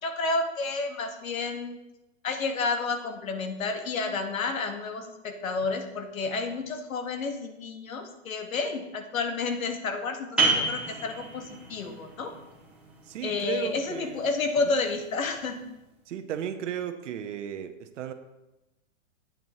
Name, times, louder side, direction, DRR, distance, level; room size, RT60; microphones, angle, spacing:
voice 1, 0.0-1.8 2.2-12.3 13.2-15.6, left 3 dB, 90° left, 6 dB, 1.3 m, -30 dB
sound 1, 10.4-15.7, right 3 dB, 5° right, 1.6 m, -32 dB
voice 2, 13.0-14.2 14.6-14.8 16.1-18.1, right 9 dB, 65° right, 8 dB, 0.9 m, -35 dB
9.3 x 8.9 x 2.8 m, 0.97 s
hypercardioid pair, 145°, 40 cm